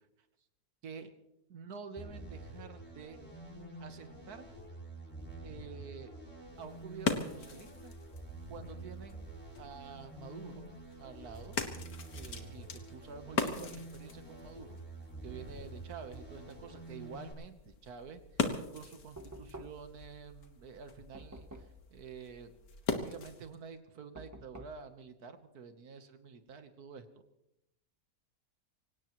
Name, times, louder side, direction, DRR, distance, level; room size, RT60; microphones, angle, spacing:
voice 1, 1.5-3.2 3.8-4.5 5.4-6.1 6.6-7.9 8.5-9.3 9.6-10.7 11.0-11.6 12.1-14.8 15.2-22.6 22.9-27.0, right 6 dB, 85° right, 9 dB, 1.7 m, -49 dB
sound 1, 2.0-17.3, right 2 dB, 5° left, 5.2 m, -48 dB
sound 2, 6.5-23.6, left 4 dB, 75° left, 2.0 m, -41 dB
Knock, 19.2-20.0 21.1-21.9 24.2-24.9, right 1 dB, 15° right, 0.9 m, -49 dB
25.5 x 17.5 x 3.1 m, 0.87 s
omnidirectional pair, 1.6 m